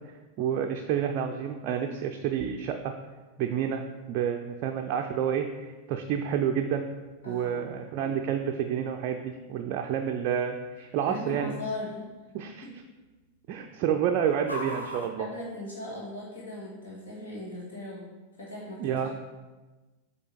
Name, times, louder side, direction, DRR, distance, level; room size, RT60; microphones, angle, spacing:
voice 1, 0.4-2.9 3.4-3.8 4.1-6.9 7.3-11.5 12.3-12.7 13.5-15.3 18.8-19.2, right 8 dB, 40° right, 3 dB, 0.4 m, -29 dB
sound 1, 1.5-16.3, left 1 dB, 85° left, 0.8 m, -49 dB
voice 2, 7.2-7.8 11.0-12.1 12.6-12.7 15.2-18.1 18.4-19.2, left 1 dB, 70° left, -5 dB, 1.8 m, -39 dB
7.8 x 2.9 x 4.3 m, 1.2 s
figure-of-eight pair, 90°, 0 cm